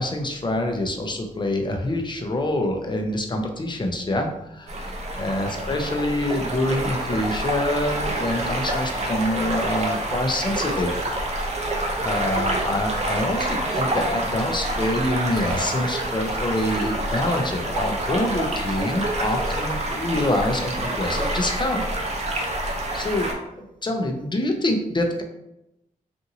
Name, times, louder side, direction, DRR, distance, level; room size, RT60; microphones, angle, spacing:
voice 1, 0.0-4.7 5.2-10.9 12.0-21.8 22.3-22.5 22.9-25.2, left 1 dB, 30° left, 3 dB, 0.5 m, -26 dB
sound 1, 4.7-23.3, right 1 dB, 45° right, 0.6 m, -27 dB
2.7 x 2.6 x 2.7 m, 0.87 s
cardioid pair, 65°, 15 cm